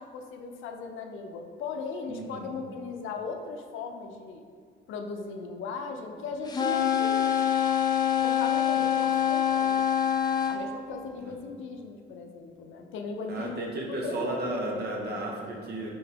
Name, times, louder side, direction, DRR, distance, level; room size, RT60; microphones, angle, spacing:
voice 1, 0.0-4.4 4.9-7.5 8.2-9.8 10.5-14.4, left 4 dB, 80° left, 4 dB, 0.5 m, -38 dB
voice 2, 2.1-2.5 11.2-11.3 13.3-15.9, right 1 dB, 55° right, 0 dB, 0.8 m, -33 dB
sound 1, 6.5-10.6, left 9 dB, 20° left, 0.4 m, -25 dB
3.9 x 3.8 x 2.8 m, 2.2 s
cardioid pair, 90°, 20 cm